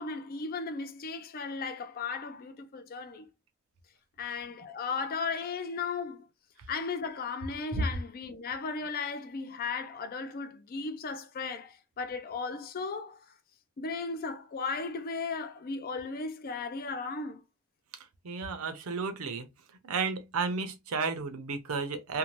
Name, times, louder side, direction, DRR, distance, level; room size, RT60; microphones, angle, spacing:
voice 1, 0.0-3.3 4.2-6.3 6.7-13.3 13.8-17.4, left 4 dB, 45° left, 0.4 m, -36 dB
voice 2, 18.2-19.5 19.8-22.2, right 4 dB, 75° right, 0.6 m, -32 dB
2.6 x 2.1 x 3.0 m
head